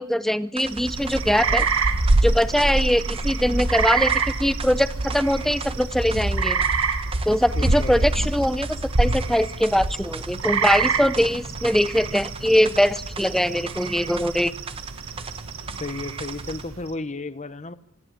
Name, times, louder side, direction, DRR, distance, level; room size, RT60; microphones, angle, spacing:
voice 1, 0.0-1.7 2.2-6.6 7.3-14.5, equal, ahead, 13 dB, 0.7 m, -22 dB
sound 1, 0.6-16.7, right 5 dB, 25° right, 1.0 m, -40 dB
sound 2, 0.6-16.9, right 3 dB, 75° right, 1.3 m, -26 dB
voice 2, 7.5-8.1 15.8-17.7, left 2 dB, 35° left, 13 dB, 1.0 m, -33 dB
26.0 x 11.0 x 9.9 m, 0.80 s
head